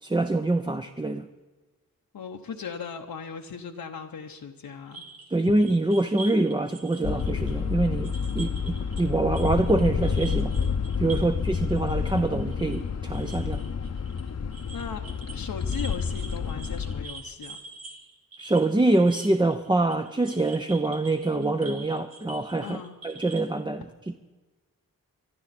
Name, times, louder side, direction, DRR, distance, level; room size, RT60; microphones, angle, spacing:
voice 1, 0.0-1.3 5.3-10.5 11.0-13.6 18.4-22.8 23.0-23.9, right 2 dB, 15° right, 7 dB, 0.5 m, -25 dB
voice 2, 2.1-5.0 11.2-11.4 14.7-15.0 15.3-17.6 22.6-23.0, left 6 dB, 85° left, 2 dB, 0.9 m, -38 dB
sound 1, 4.9-9.1 9.3-23.5, right 3 dB, 85° right, 1.7 m, -45 dB
sound 2, 7.0-17.1, left 6 dB, 50° left, 0.7 m, -29 dB
24.0 x 12.0 x 4.2 m, 1.2 s
wide cardioid pair, 125°, 34 cm